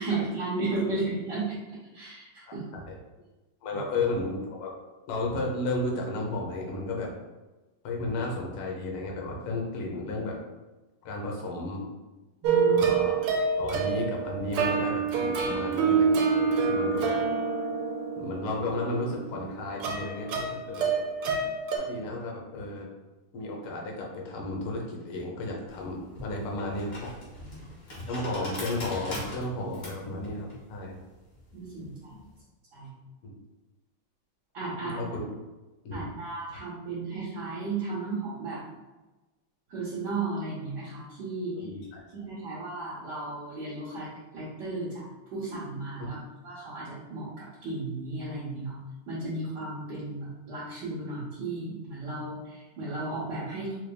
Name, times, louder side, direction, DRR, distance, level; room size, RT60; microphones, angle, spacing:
voice 1, 0.0-1.6 1.9-2.6 12.4-12.9 27.4-27.6 31.5-31.9 32.7-32.9 34.5-35.0 35.9-38.6 39.7-41.7 42.1-44.1 44.3-46.2 46.4-48.8 49.1-53.8, right 3 dB, 60° right, -8 dB, 1.4 m, -34 dB
voice 2, 3.6-4.7 5.1-7.1 7.8-10.4 11.0-11.9 12.7-13.2 13.5-17.1 18.2-21.0 21.8-22.9 23.3-27.1 28.1-31.0 33.2-33.3 34.8-35.3 35.8-36.1 41.5-42.0, left 2 dB, 90° left, -1 dB, 1.7 m, -33 dB
sound 1, 12.4-21.8, right 5 dB, 85° right, 1.5 m, -27 dB
sound 2, 25.7-32.3, left 1 dB, 45° left, 1.8 m, -41 dB
4.5 x 3.3 x 2.2 m, 1.1 s
omnidirectional pair, 2.3 m